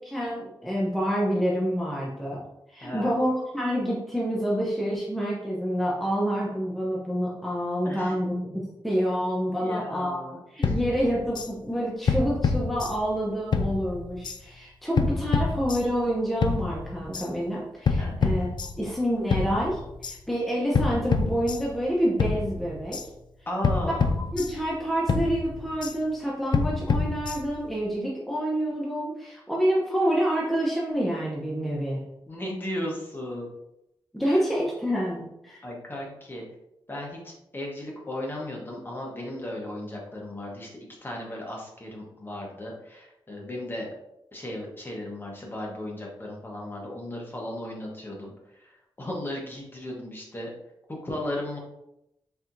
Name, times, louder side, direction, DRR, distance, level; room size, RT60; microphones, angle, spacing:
voice 1, 0.0-2.4 2.7-8.5 8.8-10.2 10.5-18.5 18.8-23.0 24.3-32.0 34.1-35.6, equal, ahead, -5 dB, 0.8 m, -27 dB
voice 2, 2.8-3.1 7.8-8.2 9.5-10.7 18.0-18.2 23.5-24.1 32.3-33.5 34.3-34.4 35.6-36.4 36.9-40.7 41.0-43.9 44.3-48.7 49.0-50.5 51.0-51.6, left 1 dB, 25° left, -2 dB, 1.0 m, -35 dB
sound 1, 10.6-11.5 12.1-13.2 13.5-14.4 15.0-16.1 16.4-17.3 17.9-19.0 19.3-20.2 20.7-21.9 22.2-23.1 23.6-24.8 25.1-26.0 26.5-27.7, left 4 dB, 60° left, 0.4 m, -27 dB
4.4 x 3.4 x 2.6 m, 0.84 s
wide cardioid pair, 115°, 9 cm